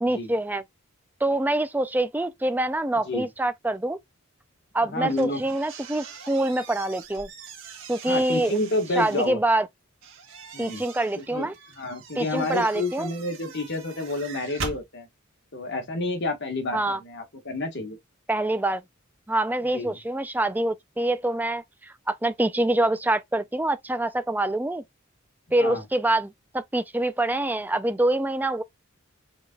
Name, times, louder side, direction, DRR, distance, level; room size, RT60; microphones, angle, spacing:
voice 1, 0.0-0.6 1.2-4.0 4.7-7.3 7.9-8.6 9.0-9.7 10.6-11.5 12.2-13.1 16.7-17.0 18.3-18.8 19.3-24.8 25.5-28.6, right 1 dB, 10° right, 0.4 m, -25 dB
voice 2, 4.8-5.4 8.1-9.4 10.5-10.8 11.1-15.1 15.5-18.0 19.7-19.9 25.6-25.8, left 2 dB, 55° left, 1.5 m, -30 dB
sound 1, 5.1-9.3 10.0-14.8, right 5 dB, 65° right, 1.8 m, -42 dB
5.2 x 4.1 x 2.3 m
head